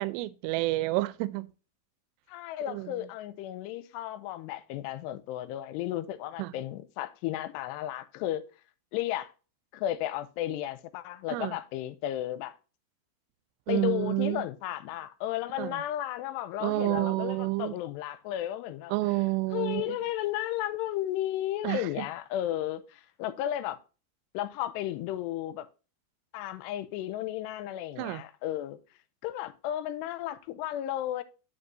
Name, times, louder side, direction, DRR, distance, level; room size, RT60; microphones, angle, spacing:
voice 1, 0.0-1.5 2.7-3.1 6.4-6.5 11.3-11.6 13.7-14.4 15.6-15.8 16.6-17.7 18.9-19.9 21.6-22.1 28.0-28.2, right 20 dB, 85° right, 2.6 m, -29 dB
voice 2, 2.3-8.4 8.9-9.3 9.7-12.6 13.7-18.9 19.5-23.8 24.3-25.7 26.3-28.8 29.2-31.2, left 13 dB, 85° left, 2.7 m, -34 dB
9.7 x 5.8 x 2.6 m
omnidirectional pair, 4.8 m